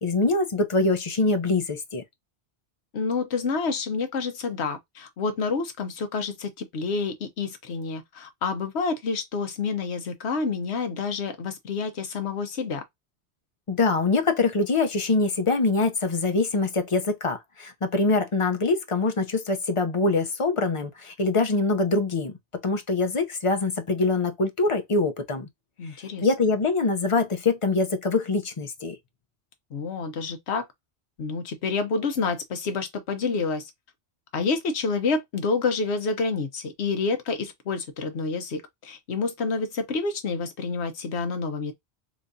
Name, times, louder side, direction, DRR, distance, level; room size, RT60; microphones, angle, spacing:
voice 1, 0.0-2.0 13.7-22.3 22.6-25.5 26.2-29.0, left 3 dB, 35° left, 0.6 m, -24 dB
voice 2, 2.9-12.8 25.8-26.3 29.7-30.7 31.2-33.7 34.3-41.7, left 4 dB, 70° left, 1.1 m, -28 dB
3.5 x 3.1 x 2.6 m
omnidirectional pair, 1.2 m